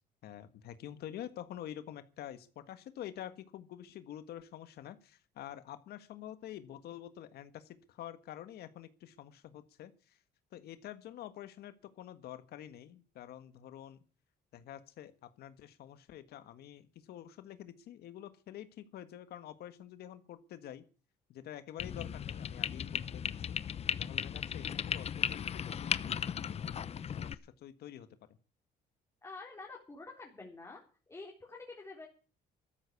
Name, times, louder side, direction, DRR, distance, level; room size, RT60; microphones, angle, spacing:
voice 1, 0.2-10.2 10.5-14.0 14.5-20.8 21.3-23.6 24.0-26.8 27.2-28.1, left 11 dB, 70° left, 11 dB, 1.6 m, -48 dB
sound 1, 21.8-27.3, left 8 dB, 40° left, 0.8 m, -36 dB
voice 2, 29.2-30.8 31.1-32.1, left 3 dB, 15° left, -1 dB, 3.8 m, -48 dB
13.5 x 10.0 x 8.3 m, 0.38 s
cardioid pair, 110°, 17 cm